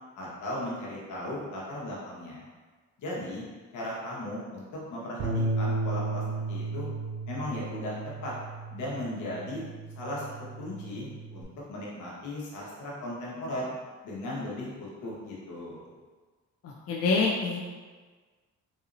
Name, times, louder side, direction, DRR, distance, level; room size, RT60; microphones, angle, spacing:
voice 1, 0.1-2.4 3.0-3.4 3.7-6.9 7.3-8.3 8.7-9.6 10.0-13.7 14.0-15.9, left 1 dB, 80° left, -5 dB, 1.2 m, -37 dB
Bass guitar, 5.2-11.4, right 2 dB, 85° right, 0.8 m, -34 dB
voice 2, 16.6-17.6, left 3 dB, 55° left, -2 dB, 0.5 m, -26 dB
4.1 x 2.7 x 2.6 m, 1.4 s
cardioid pair, 90°, 30 cm